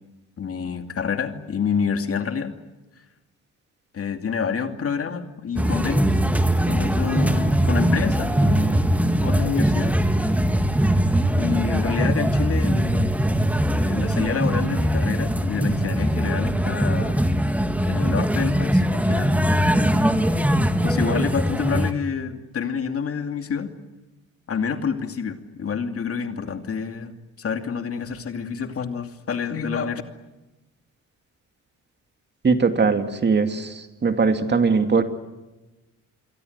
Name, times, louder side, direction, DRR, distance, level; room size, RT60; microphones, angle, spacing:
voice 1, 0.4-2.6 3.9-6.2 6.6-10.3 11.3-13.1 13.7-17.3 17.8-19.4 20.8-23.7 24.5-30.0, left 6 dB, 50° left, 6 dB, 2.6 m, -28 dB
sound 1, 5.6-21.9, equal, 5° right, 1.9 m, -21 dB
voice 2, 32.4-35.0, right 4 dB, 35° right, 7 dB, 2.4 m, -20 dB
28.0 x 23.0 x 8.1 m, 1.1 s
cardioid pair, 90°, 30 cm